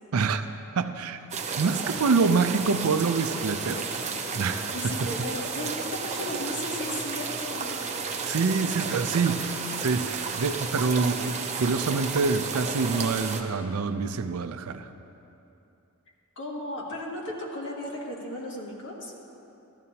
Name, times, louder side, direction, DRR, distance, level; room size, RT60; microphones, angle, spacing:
voice 1, 0.1-0.4 0.8-1.2 1.6-3.8 4.3-4.9 8.2-9.5 9.8-14.9, right 4 dB, 80° right, 9 dB, 0.5 m, -26 dB
sound 1, 1.3-13.4, right 5 dB, 35° right, 0.7 m, -32 dB
voice 2, 4.7-7.7 16.4-19.1, left 1 dB, 60° left, -3 dB, 1.8 m, -35 dB
14.0 x 12.5 x 2.9 m, 2.8 s
head